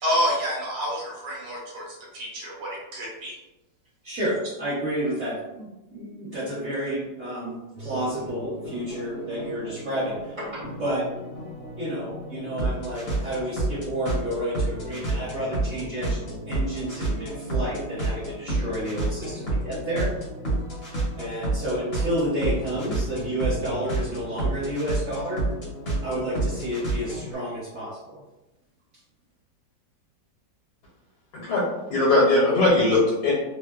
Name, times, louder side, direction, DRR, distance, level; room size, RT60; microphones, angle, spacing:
voice 1, 0.0-3.3, equal, 75° right, -5 dB, 1.3 m, -28 dB
voice 2, 4.0-11.1 11.8-20.1 21.1-25.5 26.0-28.2, right 1 dB, 50° right, -12 dB, 1.4 m, -30 dB
sound 1, 7.7-27.4, right 2 dB, 50° left, 0.7 m, -30 dB
voice 3, 31.3-31.6 31.9-33.3, left 2 dB, 75° left, -5 dB, 1.2 m, -19 dB
3.1 x 2.0 x 2.2 m, 1.0 s
omnidirectional pair, 2.0 m